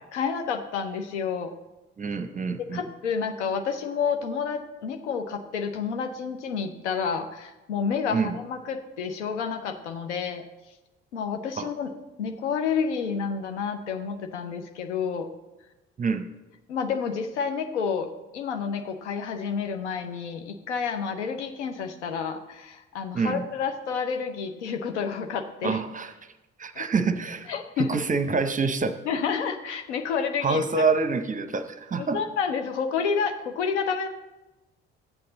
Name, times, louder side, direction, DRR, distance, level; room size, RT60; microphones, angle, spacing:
voice 1, 0.1-1.5 2.7-10.4 11.1-11.9 12.2-15.3 16.7-25.8 26.8-26.9 27.5-27.9 29.1-30.6 32.0-34.1, left 6 dB, 75° left, 6 dB, 0.7 m, -29 dB
voice 2, 2.0-2.9 8.1-8.3 11.6-11.7 16.0-16.2 23.1-23.4 25.6-26.1 26.6-27.5 27.8-29.0 30.4-32.2, right 4 dB, 20° right, 9 dB, 0.8 m, -26 dB
12.0 x 8.5 x 3.9 m, 1.1 s
figure-of-eight pair, 45°, 35 cm